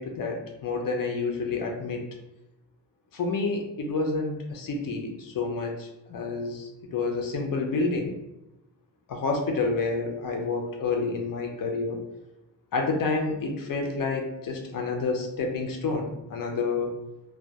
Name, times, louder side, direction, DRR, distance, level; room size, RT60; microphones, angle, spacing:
voice 1, 0.0-2.0 3.1-8.2 9.1-12.0 12.7-16.9, left 3 dB, 80° left, 2 dB, 0.5 m, -29 dB
2.2 x 2.1 x 2.7 m, 0.93 s
wide cardioid pair, 135°, 32 cm